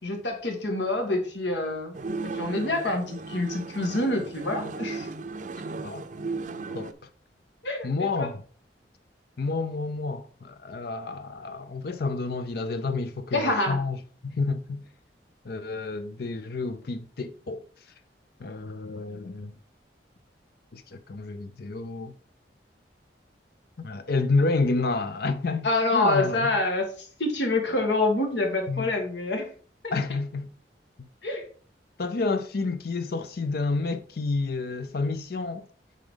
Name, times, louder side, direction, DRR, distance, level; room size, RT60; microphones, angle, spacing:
voice 1, 0.0-2.0 2.2-5.1 7.6-8.3 13.3-13.8 25.6-29.5 31.2-31.4, left 2 dB, 85° left, 2.0 m, -27 dB
sound 1, 1.9-6.9, right 3 dB, 45° right, 0.6 m, -35 dB
voice 2, 7.8-8.4 9.4-14.0 14.2-14.8 15.4-17.6 18.4-19.5 20.7-22.1 23.8-26.5 28.7-28.9 29.9-30.5 31.0-31.1 32.0-35.7, left 3 dB, 60° left, 0.5 m, -29 dB
8.1 x 5.1 x 3.8 m
head